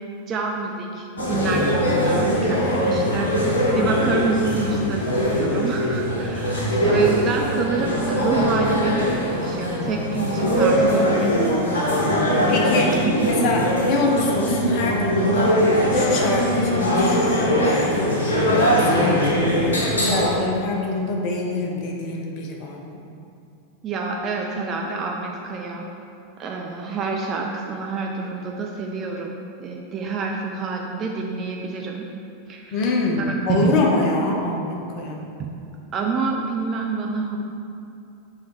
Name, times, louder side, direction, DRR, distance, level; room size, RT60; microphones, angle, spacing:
voice 1, 0.3-3.3 3.7-11.5 13.0-13.5 23.8-25.9 26.4-32.0 32.5-32.8 33.6-33.8 35.9-37.4, right 4 dB, 30° right, 0 dB, 0.5 m, -27 dB
sound 1, 1.2-20.3, equal, 70° left, 1.1 m, -21 dB
voice 2, 12.5-13.0 13.3-15.6 15.9-19.6 20.0-23.0 32.7-35.3, left 3 dB, 40° left, 0 dB, 0.9 m, -25 dB
6.1 x 3.6 x 4.6 m, 2.6 s
figure-of-eight pair, 90°, 0 cm